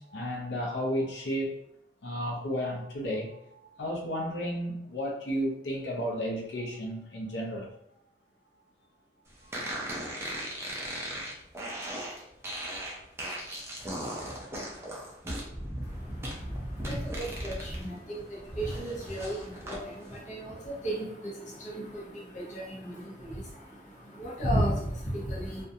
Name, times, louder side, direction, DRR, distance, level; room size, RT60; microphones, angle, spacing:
voice 1, 0.0-1.5 2.0-3.3 3.8-7.7, equal, 85° left, -1 dB, 0.6 m, -32 dB
sound 1, 9.5-17.8 18.2-19.8, right 1 dB, 15° right, 0.4 m, -37 dB
voice 2, 15.8-25.6, right 1 dB, 40° left, -4 dB, 0.6 m, -34 dB
2.4 x 2.2 x 2.7 m, 0.77 s
head